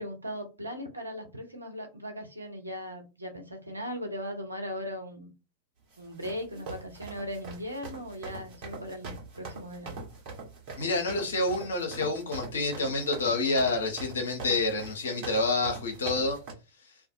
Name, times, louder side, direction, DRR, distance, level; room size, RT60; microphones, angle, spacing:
voice 1, 0.0-5.3 6.0-10.0, equal, 85° right, 0.7 m, -38 dB
sound 1, 5.9-16.5, right 3 dB, 45° right, 1.2 m, -42 dB
voice 2, 10.8-16.4, left 2 dB, 65° left, 0.9 m, -28 dB
2.5 x 2.4 x 2.5 m
figure-of-eight pair, 90°, 0 cm